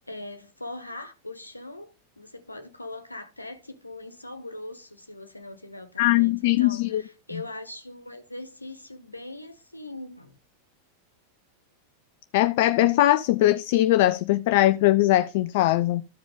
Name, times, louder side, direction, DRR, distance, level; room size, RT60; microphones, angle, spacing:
voice 1, 0.1-10.4, left 2 dB, 85° left, 1.2 m, -41 dB
voice 2, 6.0-7.0 7.3-7.4 12.3-16.0, left 15 dB, 50° left, 0.5 m, -21 dB
14.0 x 5.0 x 3.6 m
figure-of-eight pair, 90°, 0 cm